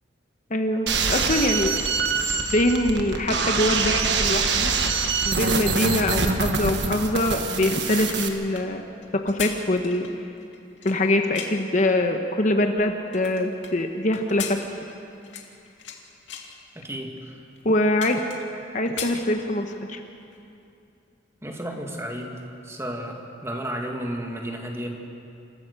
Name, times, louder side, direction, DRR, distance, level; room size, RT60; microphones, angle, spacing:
voice 1, 0.5-1.7 2.5-4.7 5.2-8.8 9.1-10.1 10.8-14.6 17.6-18.2 18.7-20.0, left 1 dB, 40° left, 5 dB, 1.1 m, -23 dB
sound 1, 0.9-8.3, right 5 dB, 70° right, 1.5 m, -25 dB
sound 2, 7.9-11.7 12.3-13.7 14.1-16.0 16.3-16.6 17.2-17.3 17.6-18.6 18.8-19.8 20.2-20.4, left 8 dB, 80° left, 2.3 m, -37 dB
voice 2, 16.8-17.4 21.4-25.0, equal, 15° right, 1 dB, 2.0 m, -33 dB
27.5 x 14.5 x 6.7 m, 2.6 s
head